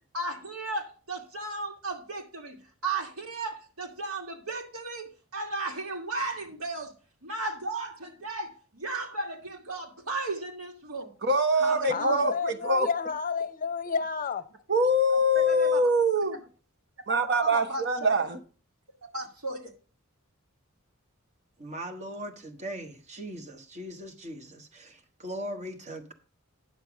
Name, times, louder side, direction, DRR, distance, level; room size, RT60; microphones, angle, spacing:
voice 1, 0.1-2.6 2.8-6.9 7.2-11.1 11.6-12.3 15.3-15.8 17.4-18.1 19.1-19.7, right 3 dB, 85° right, 2.5 m, -35 dB
voice 2, 11.2-12.9 14.7-16.4 17.1-18.4, equal, 55° right, 1.2 m, -24 dB
voice 3, 11.9-14.5, left 6 dB, 40° left, 0.7 m, -30 dB
voice 4, 21.6-26.1, equal, 35° right, 1.3 m, -39 dB
9.8 x 6.8 x 4.9 m
head